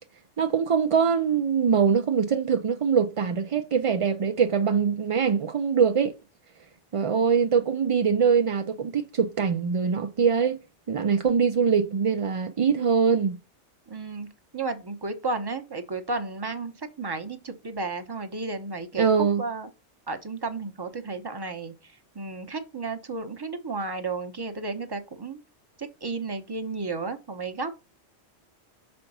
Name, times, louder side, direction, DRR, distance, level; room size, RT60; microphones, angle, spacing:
voice 1, 0.4-6.1 6.9-10.6 10.9-13.4 19.0-19.4, right 6 dB, 60° right, 0.3 m, -23 dB
voice 2, 13.9-14.3 14.5-16.7 17.0-19.7 20.1-25.4 25.8-27.8, right 3 dB, 25° right, 0.7 m, -33 dB
5.7 x 4.3 x 5.4 m
omnidirectional pair, 1.2 m